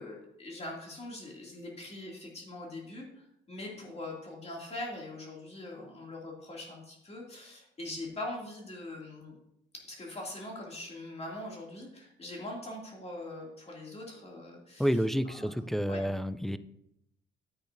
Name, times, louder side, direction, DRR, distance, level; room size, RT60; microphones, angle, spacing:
voice 1, 0.0-9.3 9.7-16.0, left 1 dB, 30° left, -2 dB, 2.5 m, -42 dB
voice 2, 14.8-16.6, equal, ahead, 12 dB, 0.4 m, -29 dB
10.5 x 8.2 x 2.6 m, 0.79 s
cardioid pair, 90°, 20 cm